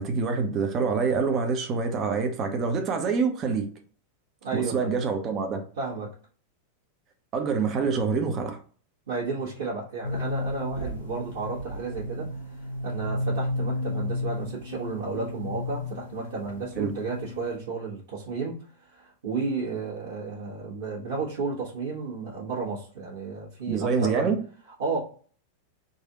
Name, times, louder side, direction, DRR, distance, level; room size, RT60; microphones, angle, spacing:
voice 1, 0.0-3.7 4.5-5.6 7.3-8.6 16.8-16.9 23.7-24.4, right 5 dB, 30° right, 0.9 m, -26 dB
voice 2, 4.4-4.9 5.8-6.1 9.1-12.3 12.8-18.6 18.9-24.3 24.8-25.0, right 4 dB, 65° right, 1.4 m, -32 dB
sound 1, 10.0-17.6, left 2 dB, 75° left, 1.3 m, -33 dB
4.1 x 2.7 x 3.7 m
figure-of-eight pair, 90°, 0 cm